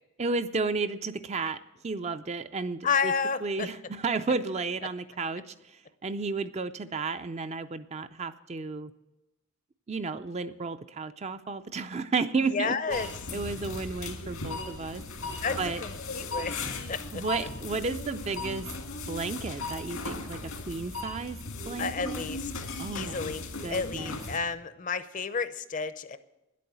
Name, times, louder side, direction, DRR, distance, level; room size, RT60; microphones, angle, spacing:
voice 1, 0.2-3.1 3.4-8.9 9.9-13.1 13.3-15.0 15.6-15.8 17.1-18.7 19.1-22.3 22.8-23.2 23.6-24.2, right 4 dB, 30° right, 11 dB, 0.4 m, -33 dB
voice 2, 2.8-3.7 12.5-13.1 15.4-17.2 21.8-22.7 22.9-23.4 23.7-26.2, left 5 dB, 35° left, 13 dB, 0.6 m, -31 dB
sound 1, 12.9-24.4, left 3 dB, 85° left, 1.9 m, -37 dB
10.5 x 8.4 x 7.9 m, 0.99 s
head